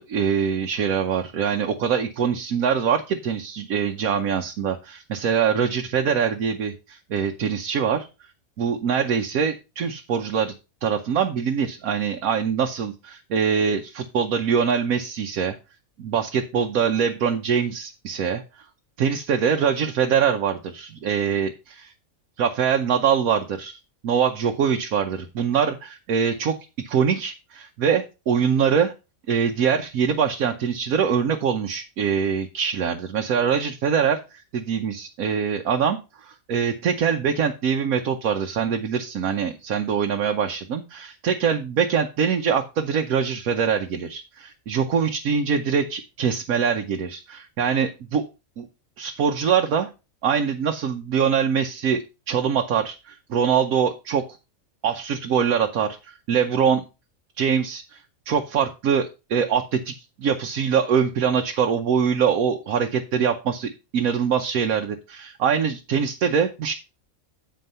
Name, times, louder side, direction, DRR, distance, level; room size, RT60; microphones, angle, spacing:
voice 1, 0.0-8.1 8.6-10.5 10.8-15.6 16.0-18.4 19.0-21.9 22.4-23.8 24.0-26.5 26.8-28.9 29.3-48.2 48.6-48.7 49.0-49.9 50.2-54.2 54.8-56.8 57.4-58.0 58.3-59.9 60.2-66.7, right 7 dB, 85° right, 4 dB, 1.3 m, -23 dB
9.4 x 4.5 x 5.5 m, 0.29 s
omnidirectional pair, 1.4 m